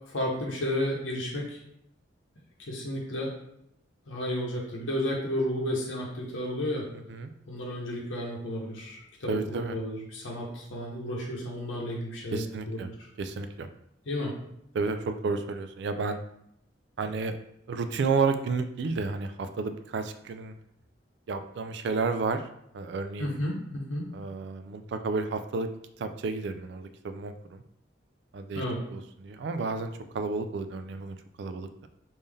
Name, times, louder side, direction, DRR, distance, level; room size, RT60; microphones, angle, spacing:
voice 1, 0.1-1.6 2.7-3.3 4.1-6.8 7.5-12.9 14.1-14.3 23.2-24.1 28.5-28.8, left 1 dB, 85° left, -3 dB, 0.8 m, -32 dB
voice 2, 9.3-9.7 12.3-12.9 13.2-13.7 14.7-16.2 17.0-17.4 17.7-20.5 21.3-22.4 22.7-23.4 24.1-25.7 26.0-27.6 28.3-28.6 28.9-31.9, right 4 dB, 60° right, 9 dB, 0.3 m, -31 dB
3.6 x 2.6 x 3.3 m, 0.76 s
head